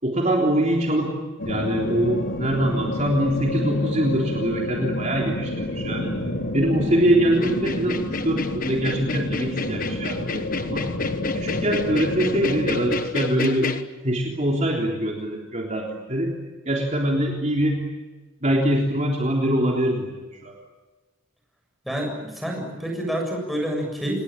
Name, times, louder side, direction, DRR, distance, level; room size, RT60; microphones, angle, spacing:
voice 1, 0.0-1.1 1.5-6.1 6.5-10.9 11.3-13.7 14.0-16.3 16.7-17.8 18.4-20.1 20.4-20.5, right 1 dB, 35° right, -1 dB, 3.6 m, -23 dB
sound 1, 1.4-13.0, left 1 dB, 60° left, 4.5 m, -29 dB
sound 2, 7.3-13.8, left 3 dB, 40° left, 1.4 m, -30 dB
voice 2, 21.8-24.2, equal, ahead, 0 dB, 7.3 m, -28 dB
28.5 x 20.5 x 9.1 m, 1.2 s
head